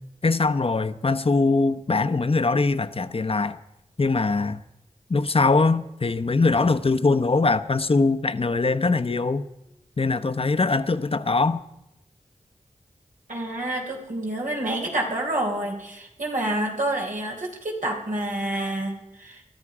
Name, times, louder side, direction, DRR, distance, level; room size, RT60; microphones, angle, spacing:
voice 1, 0.2-3.6 4.0-4.6 5.1-9.4 10.0-11.6, left 3 dB, 45° left, 0.8 m, -22 dB
voice 2, 13.3-19.4, right 1 dB, 85° right, 3.9 m, -28 dB
22.0 x 13.0 x 4.9 m
cardioid pair, 45°, 13 cm